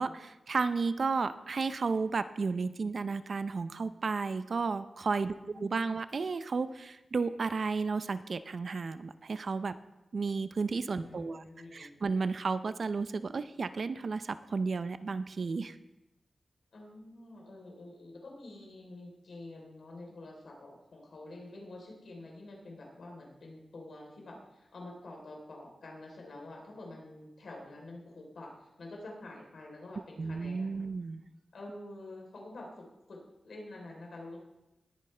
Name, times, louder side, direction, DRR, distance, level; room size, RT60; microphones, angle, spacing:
voice 1, 0.0-9.8 10.1-11.4 11.7-15.8 30.2-31.2, right 4 dB, 60° right, 12 dB, 0.5 m, -33 dB
voice 2, 5.2-6.0 10.9-12.0 16.7-30.8 31.5-34.4, left 2 dB, 75° left, 0 dB, 3.6 m, -48 dB
19.5 x 9.3 x 3.3 m, 0.95 s
wide cardioid pair, 105°, 0 cm